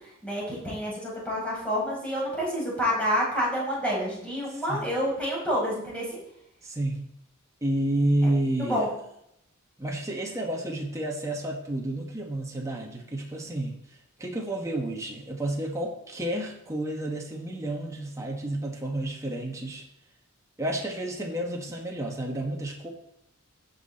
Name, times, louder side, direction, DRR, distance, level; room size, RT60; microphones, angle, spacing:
voice 1, 0.0-6.2 8.2-8.3 8.6-8.9, equal, 5° left, -6 dB, 4.8 m, -28 dB
voice 2, 6.6-7.1 7.6-8.9 9.8-13.8 14.2-19.8 20.6-22.9, right 1 dB, 15° right, 0 dB, 1.4 m, -30 dB
16.5 x 5.8 x 4.3 m, 0.77 s
head